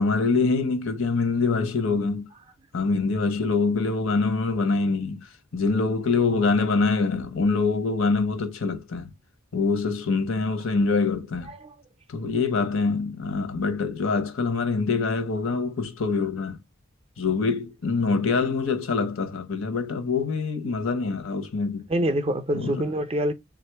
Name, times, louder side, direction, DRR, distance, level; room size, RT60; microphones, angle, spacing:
voice 1, 0.0-2.3 2.7-9.1 9.5-11.5 12.1-16.6 17.2-21.8 22.5-22.8, left 4 dB, 75° left, 0.8 m, -25 dB
voice 2, 21.9-23.3, right 1 dB, 30° right, 0.5 m, -26 dB
3.5 x 2.4 x 4.5 m
head